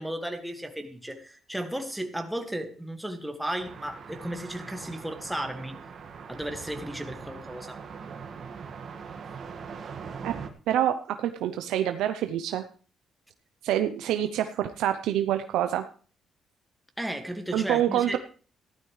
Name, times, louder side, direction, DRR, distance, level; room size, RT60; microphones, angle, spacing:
voice 1, 0.0-5.8 6.3-7.8 17.0-18.2, right 1 dB, 5° right, 5 dB, 1.9 m, -34 dB
sound 1, 3.6-10.5, right 6 dB, 55° right, 1.8 m, -41 dB
voice 2, 10.7-12.7 13.6-15.9 17.5-18.2, right 11 dB, 90° right, 8 dB, 0.7 m, -26 dB
15.0 x 12.0 x 3.2 m, 0.40 s
cardioid pair, 90°, 0 cm